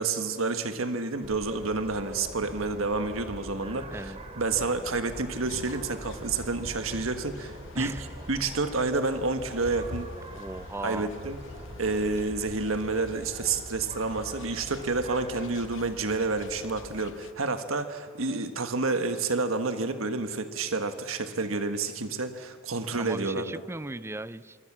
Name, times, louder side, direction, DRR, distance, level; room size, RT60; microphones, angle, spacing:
voice 1, 0.0-7.9 8.3-10.1 10.8-11.4 11.8-23.4, right 3 dB, 75° right, 8 dB, 1.5 m, -29 dB
sound 1, 1.2-17.0, right 1 dB, 30° right, 3.4 m, -44 dB
sound 2, 5.5-17.3, left 3 dB, 65° left, 0.9 m, -47 dB
voice 2, 7.7-8.1 10.3-11.1 23.0-24.6, right 2 dB, 10° right, 16 dB, 0.5 m, -37 dB
25.5 x 24.5 x 7.5 m, 2.1 s
head